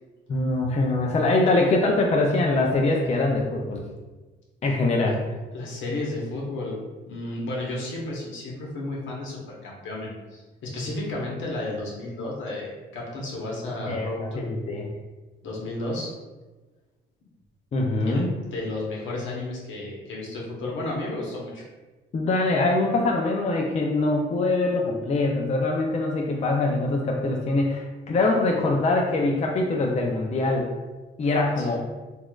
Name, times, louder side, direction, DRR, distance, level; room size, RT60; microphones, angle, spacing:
voice 1, 0.3-3.8 4.6-5.2 13.9-14.9 17.7-18.3 22.1-30.7 31.2-31.8, left 2 dB, 35° left, 0 dB, 0.4 m, -23 dB
voice 2, 5.5-6.8 7.1-14.5 15.4-16.1 18.0-21.6 31.6-31.8, left 2 dB, 75° left, -3 dB, 1.0 m, -32 dB
4.1 x 2.4 x 2.3 m, 1.2 s
cardioid pair, 90°, 20 cm